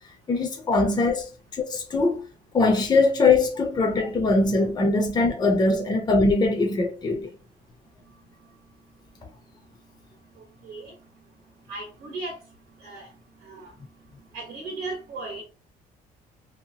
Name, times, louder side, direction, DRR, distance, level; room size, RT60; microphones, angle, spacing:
voice 1, 0.3-2.2 2.5-7.3, left 3 dB, 25° left, 0.6 m, -22 dB
voice 2, 11.7-12.4 12.8-13.1 13.5-13.7 14.3-15.4, right 2 dB, 80° right, 0.9 m, -36 dB
2.8 x 2.2 x 2.8 m
cardioid pair, 110°, 17 cm